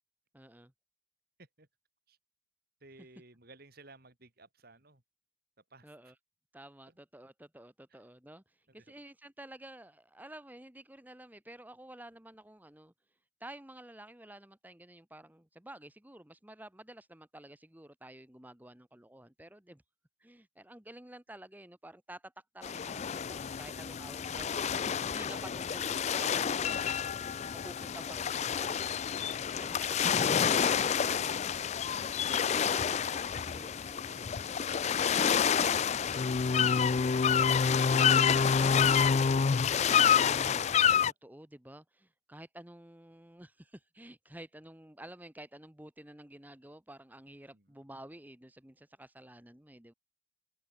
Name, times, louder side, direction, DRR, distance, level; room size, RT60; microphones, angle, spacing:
voice 1, 0.3-0.7 5.8-6.1 6.5-12.9 13.4-19.8 20.2-27.1 27.5-29.1 29.5-31.4 32.5-34.3 39.6-49.9, right 1 dB, 10° right, 1.1 m, -51 dB
voice 2, 2.8-5.0 5.7-5.9 6.9-7.0 7.9-8.0 8.7-8.9 41.0-41.1 47.5-47.8, right 3 dB, 45° right, 3.0 m, -58 dB
sound 1, 22.6-41.1, left 7 dB, 30° left, 0.3 m, -28 dB
open air
head